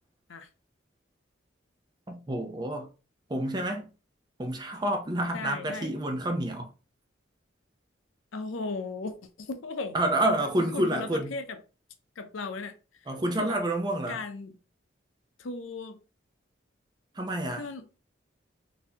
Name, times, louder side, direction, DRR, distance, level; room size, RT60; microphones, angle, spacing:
voice 1, 2.1-2.9 3.3-3.9 4.4-6.7 9.9-11.4 13.1-14.2 17.1-17.7, right 1 dB, 20° right, 0.6 m, -29 dB
voice 2, 5.3-5.9 8.3-10.0 10.7-11.6 12.2-12.7 13.4-13.6 14.1-14.5 15.4-16.0 17.6-17.8, left 3 dB, 90° left, 0.6 m, -36 dB
3.9 x 2.7 x 2.8 m
head